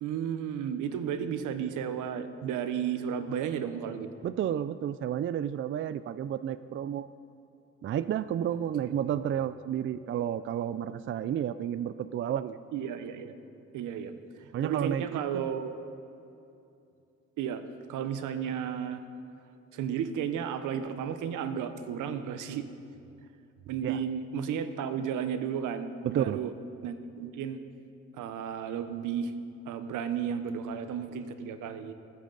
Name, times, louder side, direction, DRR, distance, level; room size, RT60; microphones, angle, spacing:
voice 1, 0.0-4.1 8.9-9.2 12.7-13.3 13.7-15.8 17.4-17.6 17.9-19.0 19.7-22.7 23.7-26.5 26.8-27.6 28.1-29.3 29.7-31.9, right 8 dB, 85° right, 10 dB, 0.9 m, -33 dB
voice 2, 4.2-7.1 7.8-12.6 14.5-15.5 23.8-24.0 26.0-26.4, right 10 dB, 40° right, 14 dB, 0.4 m, -31 dB
19.5 x 9.5 x 4.0 m, 2.6 s
cardioid pair, 90°, 30 cm